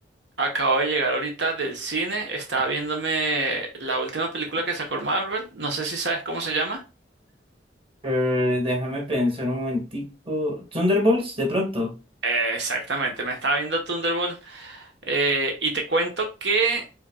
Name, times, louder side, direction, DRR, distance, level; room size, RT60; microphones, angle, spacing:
voice 1, 0.4-6.8 12.2-16.8, right 3 dB, 80° right, 3 dB, 1.1 m, -26 dB
voice 2, 8.0-11.9, left 1 dB, 30° right, 1 dB, 1.6 m, -24 dB
5.6 x 3.7 x 2.3 m, 0.30 s
head